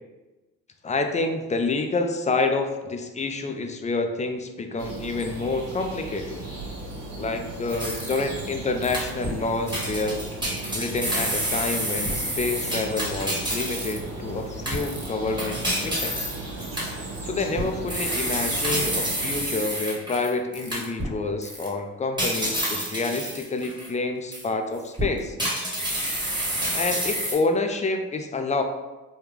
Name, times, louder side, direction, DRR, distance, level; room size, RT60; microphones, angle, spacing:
voice 1, 0.8-6.5 7.2-10.2 10.7-16.3 17.2-25.3 26.7-28.6, left 3 dB, 20° left, 5 dB, 0.4 m, -28 dB
sound 1, 4.8-19.6, right 2 dB, 50° right, 1.3 m, -36 dB
sound 2, 7.7-8.5 8.8-9.4 9.7-14.1 14.7-21.1 21.4-21.7 22.2-23.9 24.3-24.5 24.9-27.3, equal, 10° right, 1.2 m, -29 dB
3.4 x 2.3 x 3.2 m, 1.1 s
hypercardioid pair, 55°, 39 cm